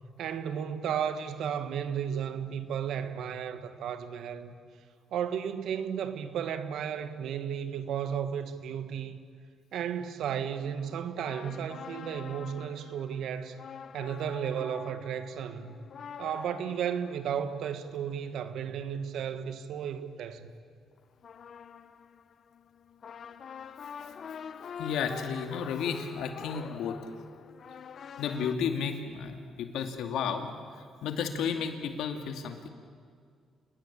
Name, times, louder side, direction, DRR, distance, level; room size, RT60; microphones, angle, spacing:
voice 1, 0.2-4.5 5.1-9.2 9.7-13.6 13.9-15.8 16.2-20.5, right 8 dB, 75° right, 1.7 m, -34 dB
sound 1, 10.3-18.9 21.0-28.6, left 7 dB, 55° left, 0.9 m, -46 dB
voice 2, 24.8-27.1 28.2-32.7, left 6 dB, 85° left, 2.4 m, -33 dB
29.0 x 19.5 x 8.8 m
cardioid pair, 90°, 0 cm